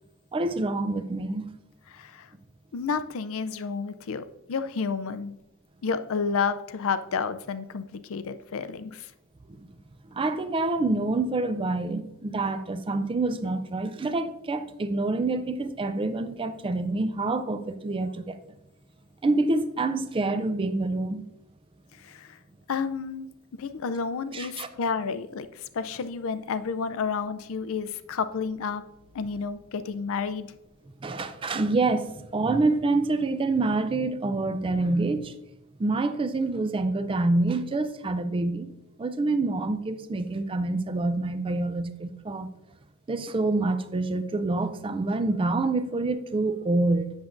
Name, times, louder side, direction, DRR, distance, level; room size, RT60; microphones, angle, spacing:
voice 1, 0.3-1.5 9.5-9.7 10.1-18.4 19.2-21.2 24.3-24.7 31.0-35.3 35.8-38.7 39.0-42.5 43.1-47.1, right 2 dB, 25° right, 0.4 m, -27 dB
voice 2, 1.9-2.3 2.7-5.4 5.8-9.1 22.0-22.4 22.7-23.3 23.6-28.8 29.1-30.5, left 5 dB, 60° left, 0.4 m, -30 dB
8.0 x 6.9 x 2.6 m
head